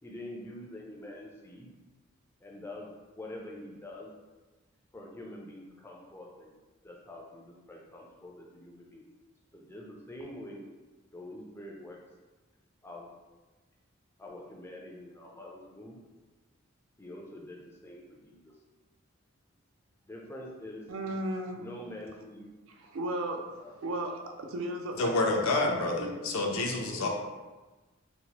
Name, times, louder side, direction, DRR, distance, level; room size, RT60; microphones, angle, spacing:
voice 1, 0.0-1.7 2.4-2.9 3.1-4.1 4.9-6.5 6.8-9.0 9.5-10.6 11.1-12.0 12.8-13.1 14.2-16.0 17.0-18.6 20.1-20.8 21.6-22.5 23.6-23.7 26.8-27.1, left 1 dB, 10° left, -2 dB, 0.3 m, -45 dB
voice 2, 20.9-21.6 22.7-26.2, right 1 dB, 75° right, 3 dB, 0.4 m, -36 dB
voice 3, 25.0-27.1, left 2 dB, 80° left, 1 dB, 0.4 m, -28 dB
2.9 x 2.0 x 2.8 m, 1.2 s
head